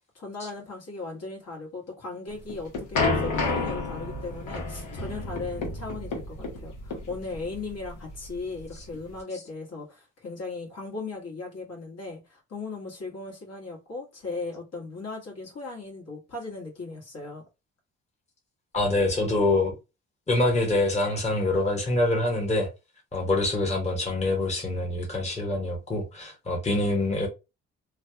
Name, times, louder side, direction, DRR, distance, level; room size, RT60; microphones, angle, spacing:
voice 1, 0.1-17.4, left 3 dB, 55° left, 1.6 m, -37 dB
sound 1, 2.3-9.2, left 3 dB, 75° left, 1.1 m, -31 dB
voice 2, 18.7-19.7 20.3-22.7 23.1-27.3, left 2 dB, 20° left, 1.1 m, -25 dB
3.2 x 2.3 x 2.8 m
cardioid pair, 90°, 30 cm